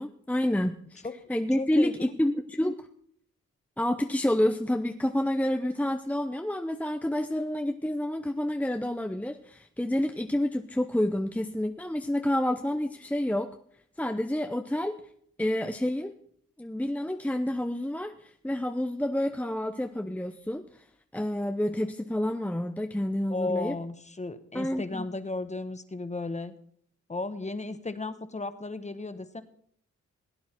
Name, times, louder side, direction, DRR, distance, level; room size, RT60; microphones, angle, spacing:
voice 1, 0.0-2.9 3.8-13.5 14.0-15.0 15.4-16.1 16.6-20.8 21.1-23.8 24.5-25.1, left 1 dB, 5° left, 6 dB, 0.8 m, -29 dB
voice 2, 1.6-2.2 23.3-26.5 27.1-29.4, left 3 dB, 25° left, 11 dB, 1.2 m, -34 dB
17.5 x 9.4 x 4.5 m, 0.63 s
cardioid pair, 65°, 29 cm